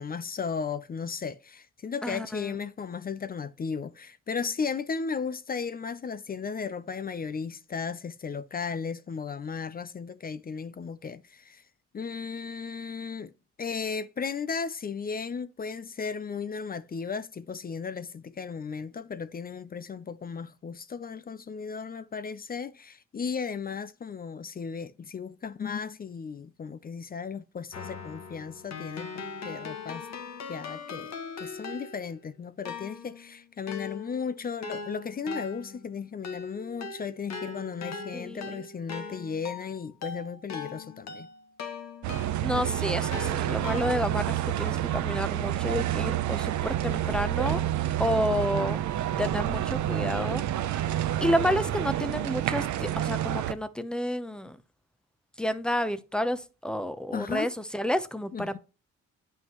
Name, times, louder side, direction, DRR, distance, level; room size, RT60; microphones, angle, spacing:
voice 1, 0.0-11.6 11.9-13.3 13.6-29.1 29.4-30.1 30.5-41.3 57.1-57.5 58.3-58.6, left 5 dB, 30° left, 0.5 m, -35 dB
voice 2, 2.0-2.6 38.1-38.6 42.4-47.6 48.0-48.8 49.2-50.4 50.7-50.9 51.2-54.6 55.4-58.6, equal, 5° left, 0.8 m, -30 dB
Keyboard (musical), 27.7-32.2 32.7-42.6 43.1-44.3, left 5 dB, 65° left, 1.7 m, -40 dB
sound 1, 42.0-53.5, right 12 dB, 70° right, 0.7 m, -29 dB
9.2 x 5.5 x 3.1 m
cardioid pair, 90°, 30 cm